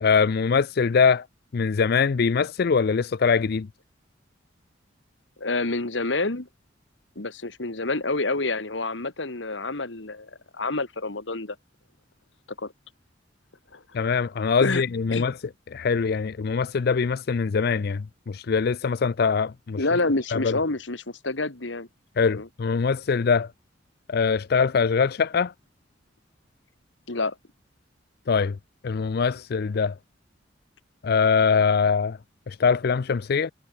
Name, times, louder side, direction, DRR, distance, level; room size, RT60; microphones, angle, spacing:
voice 1, 0.0-1.3 1.5-3.7 13.9-15.4 15.7-19.9 20.3-20.6 22.2-23.5 24.1-25.5 28.3-28.6 28.8-30.0 31.0-32.2 32.5-33.5, left 5 dB, 55° left, 0.4 m, -23 dB
voice 2, 5.4-6.5 7.2-11.6 12.6-12.7 13.7-13.8 14.6-14.8 15.1-15.2 19.8-21.9 22.3-22.5 27.1-27.4, left 3 dB, 70° left, 2.0 m, -28 dB
head